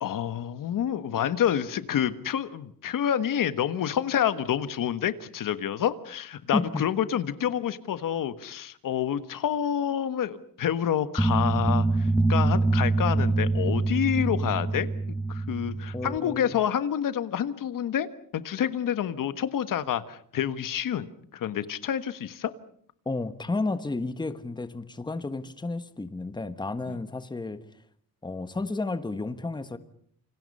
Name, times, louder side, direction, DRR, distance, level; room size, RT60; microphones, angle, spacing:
voice 1, 0.0-14.9 15.3-18.1 18.3-21.1 21.3-22.5 26.9-27.0, left 9 dB, 65° left, 13 dB, 1.5 m, -28 dB
voice 2, 6.5-6.9 15.9-16.5 23.0-27.6 28.2-29.8, left 3 dB, 10° left, 11 dB, 1.4 m, -32 dB
sound 1, 11.2-16.2, right 2 dB, 5° right, 1.0 m, -25 dB
28.5 x 26.5 x 5.5 m, 0.63 s
cardioid pair, 150°, 35 cm